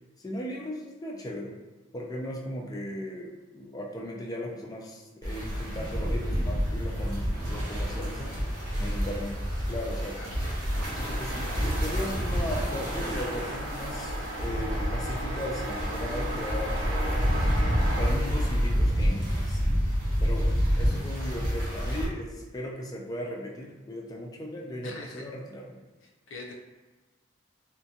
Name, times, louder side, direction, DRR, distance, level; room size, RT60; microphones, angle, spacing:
voice 1, 0.2-1.6 1.9-8.4 8.8-9.4 9.7-10.3 10.9-17.5 18.0-19.7 20.2-25.8, left 1 dB, 20° left, -1 dB, 0.3 m, -37 dB
sound 1, 5.2-22.1, equal, 50° right, 0.7 m, -28 dB
voice 2, 8.6-9.2 10.2-10.3 24.8-25.2 26.0-26.5, left 2 dB, 80° left, 0 dB, 0.5 m, -44 dB
sound 2, 10.7-18.1, equal, 80° right, 1.0 m, -36 dB
2.3 x 2.2 x 2.7 m, 1.2 s
head